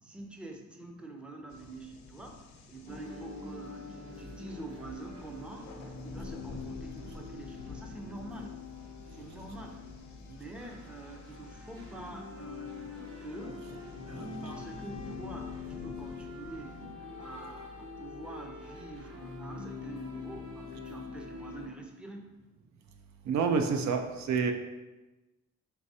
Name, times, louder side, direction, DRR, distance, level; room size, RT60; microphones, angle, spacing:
voice 1, 0.0-5.8 6.0-8.6 9.1-9.9 10.3-13.7 14.0-16.8 17.2-22.2, right 2 dB, 5° right, 2 dB, 0.5 m, -46 dB
sound 1, 1.5-16.8, left 4 dB, 65° left, 0.6 m, -51 dB
sound 2, 2.9-21.7, left 4 dB, 50° right, 1.0 m, -44 dB
voice 2, 23.2-24.5, right 5 dB, 65° right, 5 dB, 0.5 m, -28 dB
4.6 x 3.2 x 2.7 m, 1.1 s
cardioid pair, 90°, 30 cm